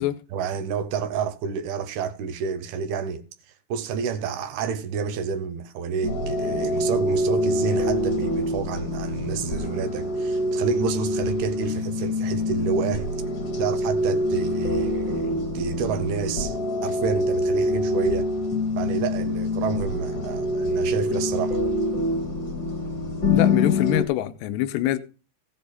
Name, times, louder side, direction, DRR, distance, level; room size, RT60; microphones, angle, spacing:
voice 1, 0.3-3.2 3.7-13.1 13.6-16.6 16.8-18.3 18.8-21.6, right 6 dB, 75° right, 2.6 m, -29 dB
sound 1, 6.0-24.0, left 1 dB, 40° left, 1.6 m, -25 dB
voice 2, 23.3-25.0, left 14 dB, 80° left, 3.0 m, -24 dB
16.0 x 7.9 x 4.1 m
omnidirectional pair, 5.2 m